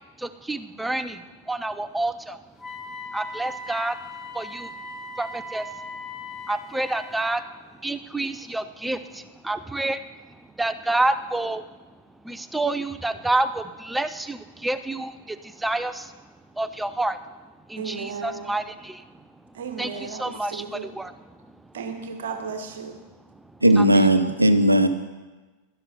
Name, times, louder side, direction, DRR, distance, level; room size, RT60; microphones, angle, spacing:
voice 1, 0.2-2.4 3.1-4.0 4.3-4.7 5.2-5.7 6.5-7.4 7.8-10.0 10.6-11.7 12.2-16.1 16.6-17.2 17.7-19.0 19.8-19.9 20.2-21.1 23.8-24.0, right 2 dB, 5° right, 12 dB, 0.6 m, -28 dB
Wind instrument woodwind instrument, 2.6-7.4, left 2 dB, 10° left, 1.2 m, -38 dB
voice 2, 17.8-18.6 19.5-20.9 21.7-23.0, right 5 dB, 60° right, 6 dB, 1.3 m, -35 dB
voice 3, 23.6-24.9, right 1 dB, 85° right, 11 dB, 0.8 m, -17 dB
12.0 x 11.0 x 5.4 m, 1.2 s
figure-of-eight pair, 90°, 0 cm